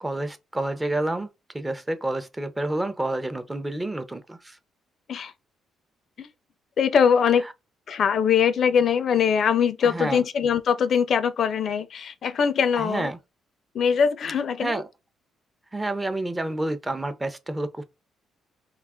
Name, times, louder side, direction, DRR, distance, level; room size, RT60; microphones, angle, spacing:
voice 1, 0.0-1.3 1.5-4.6 9.8-10.2 12.8-13.2 14.6-14.9 15.7-17.8, right 2 dB, 15° right, 0.5 m, -29 dB
voice 2, 6.8-7.5 7.9-13.1 13.7-14.8, left 7 dB, 60° left, 0.4 m, -22 dB
2.3 x 2.3 x 3.5 m
cardioid pair, 90°, 0 cm